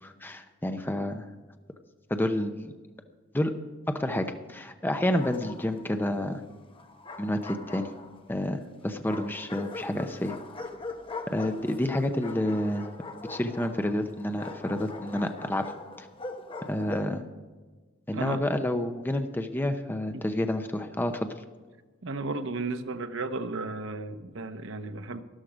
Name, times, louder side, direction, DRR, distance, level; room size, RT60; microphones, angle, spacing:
voice 1, 0.0-1.3 2.1-2.7 3.3-3.5 3.9-6.4 7.2-7.9 8.3-10.3 11.3-12.9 13.3-15.7 16.0-16.1 16.7-17.2 18.1-21.3, left 1 dB, 10° left, 7 dB, 0.6 m, -29 dB
Bark, 4.9-5.8 6.7-8.3 9.1-17.2, left 3 dB, 25° left, 1.1 m, -41 dB
voice 2, 22.0-25.2, right 3 dB, 70° right, 9 dB, 0.9 m, -34 dB
13.0 x 12.0 x 5.0 m, 1.4 s
head